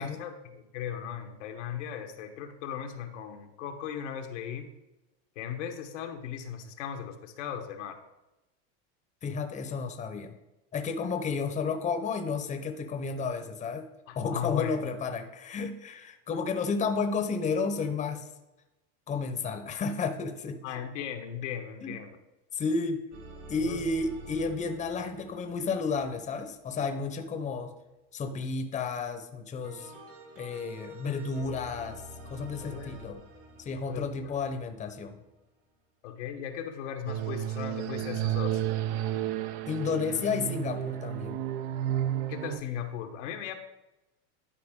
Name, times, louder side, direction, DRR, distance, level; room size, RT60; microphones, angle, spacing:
voice 1, 0.0-4.7 5.4-8.0 14.1-14.8 20.6-22.1 23.6-23.8 32.6-33.2 33.9-34.4 36.0-38.6 42.3-43.5, left 9 dB, 90° left, 5 dB, 1.1 m, -37 dB
voice 2, 9.2-10.3 10.7-13.9 14.2-18.3 19.1-20.6 21.8-22.0 22.5-23.0 23.5-27.7 28.1-29.9 30.4-32.0 32.3-33.2 33.6-35.2 39.7-41.4, left 4 dB, 20° left, 6 dB, 0.7 m, -32 dB
sound 1, 23.1-27.2 29.6-35.3, right 2 dB, 85° right, 3.1 m, -48 dB
sound 2, 37.1-42.6, right 12 dB, 60° right, 0.6 m, -32 dB
11.5 x 4.5 x 3.6 m, 0.98 s
supercardioid pair, 125°, 35 cm